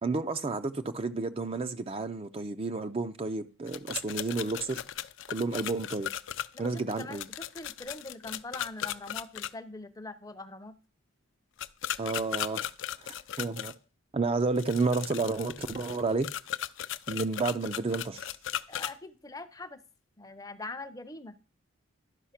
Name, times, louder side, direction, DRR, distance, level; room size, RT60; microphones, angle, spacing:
voice 1, 0.0-4.8 5.3-6.1 6.6-7.3 12.0-12.7 13.0-13.7 14.1-16.3 17.1-18.3, right 3 dB, 25° right, 0.4 m, -31 dB
sound 1, 3.7-9.5 11.6-13.7 14.6-18.9, left 11 dB, 65° left, 0.4 m, -37 dB
voice 2, 6.5-10.7 18.7-19.8 20.2-21.4, left 2 dB, 15° left, 0.6 m, -43 dB
11.5 x 5.5 x 5.8 m
head